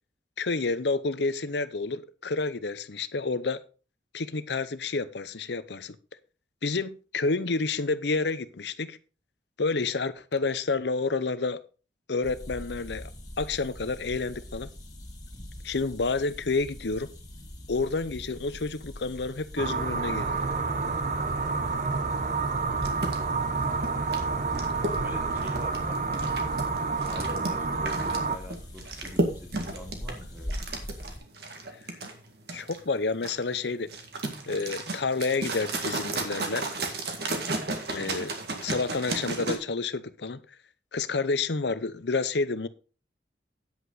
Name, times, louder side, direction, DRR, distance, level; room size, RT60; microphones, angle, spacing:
voice 1, 0.4-3.6 4.1-6.0 6.6-9.0 9.6-11.6 12.1-13.1 13.4-14.7 15.6-17.1 17.7-20.4 32.5-33.9 34.5-36.7 37.9-40.4 40.9-42.7, left 3 dB, 75° left, 0.8 m, -29 dB
sound 1, 12.2-31.2, equal, 25° left, 2.8 m, -42 dB
sound 2, 19.6-28.4, right 4 dB, 45° right, 0.8 m, -29 dB
sound 3, 22.8-39.6, right 2 dB, 65° right, 2.0 m, -34 dB
voice 2, 23.5-24.3 25.0-26.2 27.1-30.6, left 1 dB, 10° right, 2.4 m, -43 dB
9.8 x 8.3 x 4.0 m
head